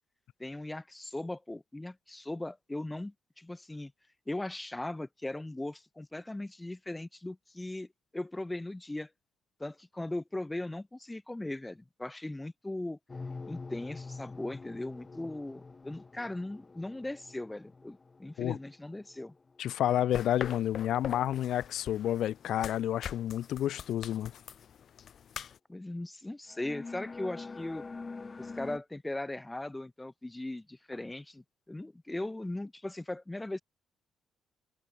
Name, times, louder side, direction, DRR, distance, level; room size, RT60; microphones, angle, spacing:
voice 1, 0.4-3.9 4.3-7.9 8.1-9.1 9.6-13.0 13.5-19.3 25.7-27.8 28.4-33.6, left 1 dB, 10° left, 2.3 m, -39 dB
sound 1, 13.1-19.6 20.2-20.5 26.5-28.8, left 4 dB, 30° left, 3.5 m, -45 dB
voice 2, 19.6-24.3, left 12 dB, 75° left, 1.9 m, -30 dB
sound 2, 20.1-25.6, left 8 dB, 60° left, 2.8 m, -44 dB
cardioid pair, 90°, 0 cm